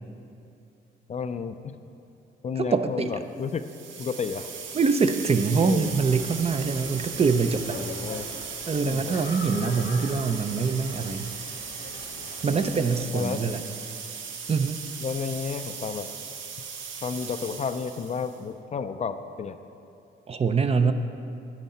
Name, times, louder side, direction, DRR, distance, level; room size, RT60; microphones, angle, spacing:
voice 1, 1.1-1.8 2.4-3.7 4.0-4.5 5.6-5.9 7.7-8.3 8.8-9.2 12.5-12.6 13.1-13.4 15.0-16.1 17.0-19.6, left 6 dB, 35° left, 9 dB, 0.4 m, -32 dB
voice 2, 2.6-3.1 4.7-7.8 8.7-11.3 12.4-13.6 14.5-14.8 20.3-20.9, right 5 dB, 30° right, 9 dB, 0.5 m, -24 dB
sound 1, 3.5-18.4, right 6 dB, 75° right, 0.9 m, -38 dB
sound 2, 5.8-12.9, left 4 dB, 65° left, 1.0 m, -43 dB
9.8 x 9.2 x 4.2 m, 2.7 s
cardioid pair, 90°, 20 cm